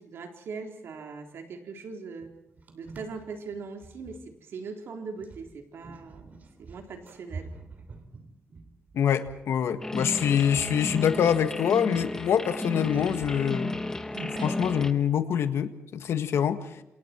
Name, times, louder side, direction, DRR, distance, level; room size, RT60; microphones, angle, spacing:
voice 1, 0.0-2.3 2.7-7.5, right 4 dB, 65° right, 3 dB, 3.9 m, -40 dB
sound 1, 2.2-4.2 5.2-9.4 9.9-10.1 10.5-11.2 11.5-11.6 11.9-14.9, right 3 dB, 40° right, 3.0 m, -45 dB
voice 2, 8.9-13.8 14.4-16.8, left 8 dB, 70° left, 9 dB, 1.7 m, -25 dB
sound 2, 9.8-14.9, left 2 dB, 10° left, 1.2 m, -33 dB
27.5 x 27.5 x 4.5 m, 0.86 s
wide cardioid pair, 170°, 5 cm